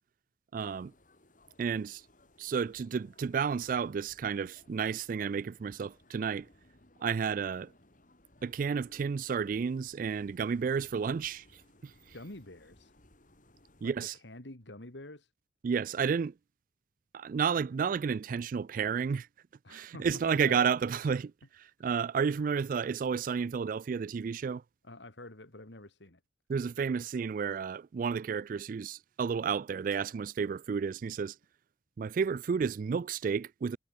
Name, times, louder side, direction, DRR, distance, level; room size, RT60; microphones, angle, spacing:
sound 1, 0.5-13.9, left 1 dB, 50° left, 4.2 m, -63 dB
voice 1, 0.5-0.9 1.6-2.0 2.4-6.5 7.0-7.7 8.4-11.9 13.8-14.1 15.6-16.3 17.1-19.3 19.7-21.3 21.6-24.6 26.5-31.4 32.0-33.8, right 6 dB, 50° right, 0.3 m, -31 dB
voice 2, 12.1-12.9 13.8-15.3 19.6-20.6 24.8-26.2, left 1 dB, 80° left, 3.1 m, -48 dB
head